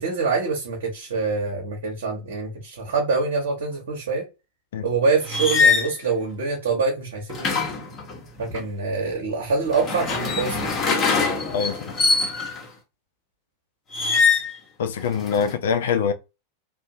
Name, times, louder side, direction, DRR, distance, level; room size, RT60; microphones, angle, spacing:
voice 1, 0.0-4.3 4.8-7.7 8.4-10.7, right 4 dB, 60° right, 0.8 m, -25 dB
sound 1, 5.2-5.9 7.3-8.6 9.6-12.7 13.9-14.5 15.0-15.5, left 4 dB, 30° left, 0.8 m, -23 dB
voice 2, 14.8-16.1, left 6 dB, 60° left, 0.3 m, -23 dB
2.6 x 2.0 x 2.5 m
figure-of-eight pair, 90°, 0 cm